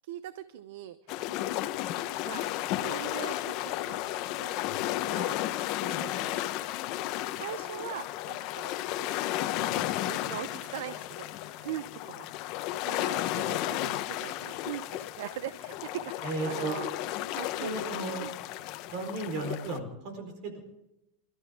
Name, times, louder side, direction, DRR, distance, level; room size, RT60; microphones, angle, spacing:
voice 1, 0.0-1.0 2.3-4.5 5.1-5.4 5.8-6.5 7.3-9.2 9.6-12.3 12.8-16.9 17.4-17.7 18.2-18.3, right 11 dB, 75° right, 13 dB, 0.8 m, -41 dB
sound 1, 1.1-19.8, left 14 dB, 50° left, 1.0 m, -33 dB
voice 2, 16.2-16.8 17.6-18.3 18.9-20.6, right 2 dB, 50° right, 6 dB, 4.4 m, -34 dB
28.0 x 13.0 x 3.7 m, 0.91 s
supercardioid pair, 145°, 0 cm